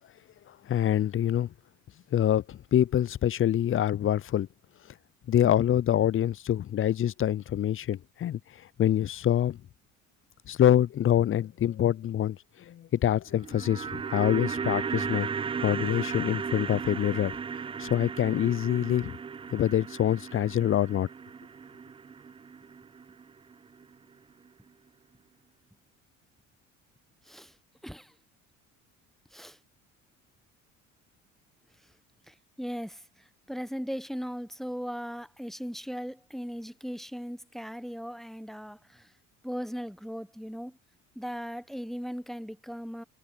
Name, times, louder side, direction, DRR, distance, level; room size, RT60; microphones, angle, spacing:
voice 1, 0.7-1.5 2.1-4.5 5.3-8.4 8.8-9.6 10.5-12.4 12.7-15.3 15.6-17.4 17.8-19.2 19.5-21.1, left 11 dB, 35° left, 0.6 m, -25 dB
sound 1, 13.3-23.5 23.8-23.9, right 6 dB, 15° right, 0.4 m, -35 dB
voice 2, 27.8-28.1 29.3-29.6 32.3-33.0 33.5-39.1 39.4-40.8 41.1-43.0, equal, ahead, 1.1 m, -38 dB
hypercardioid pair, 60°, 39 cm